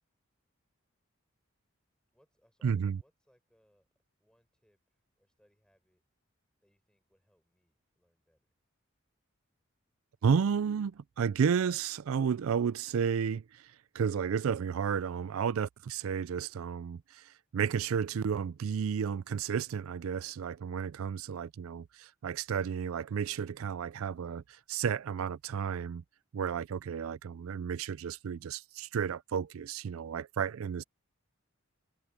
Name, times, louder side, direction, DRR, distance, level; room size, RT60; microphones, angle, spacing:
voice 1, 2.1-3.9 4.2-6.0 6.6-8.5, equal, 5° left, 6.6 m, -71 dB
voice 2, 2.6-3.0 10.2-26.0 26.3-30.8, right 7 dB, 75° right, 0.4 m, -32 dB
head